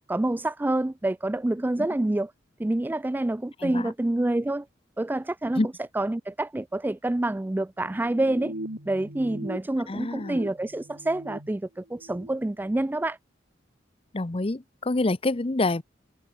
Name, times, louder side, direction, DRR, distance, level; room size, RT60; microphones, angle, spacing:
voice 1, 0.1-2.3 2.6-4.7 5.0-8.5 8.9-13.2, right 1 dB, 10° right, 0.3 m, -27 dB
voice 2, 3.6-3.9 5.6-5.7 9.9-10.4 14.1-15.8, left 2 dB, 30° left, 0.8 m, -27 dB
sound 1, 7.8-9.6 9.9-11.5 11.9-12.3, right 1 dB, 70° right, 3.8 m, -40 dB
head